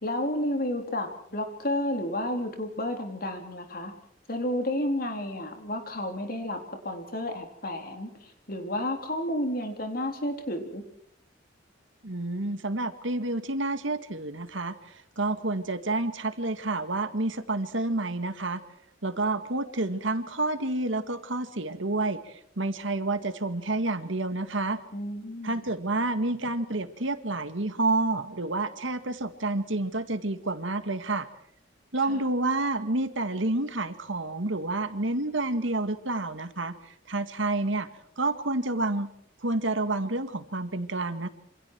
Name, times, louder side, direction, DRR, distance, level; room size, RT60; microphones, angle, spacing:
voice 1, 0.0-3.9 4.3-10.8 24.9-25.6 32.0-32.2, left 1 dB, 50° left, 5 dB, 3.9 m, -31 dB
voice 2, 12.0-14.8 15.2-18.6 19.0-24.8 25.4-31.3 31.9-36.8 37.1-37.9 38.2-39.1 39.4-41.3, right 2 dB, 85° right, 9 dB, 2.1 m, -29 dB
27.5 x 26.5 x 4.7 m, 0.64 s
head